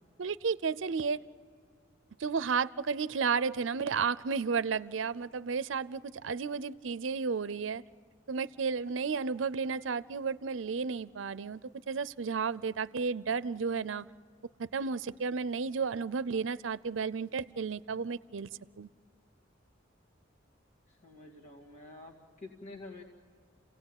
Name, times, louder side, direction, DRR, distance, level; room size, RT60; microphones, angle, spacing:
voice 1, 0.2-1.2 2.2-7.8 8.3-11.6 11.9-14.0 14.6-18.5 18.8-18.9, right 5 dB, 80° right, 18 dB, 0.5 m, -32 dB
voice 2, 20.9-23.0, left 2 dB, 35° left, -1 dB, 2.1 m, -48 dB
29.5 x 17.0 x 9.0 m, 2.1 s
head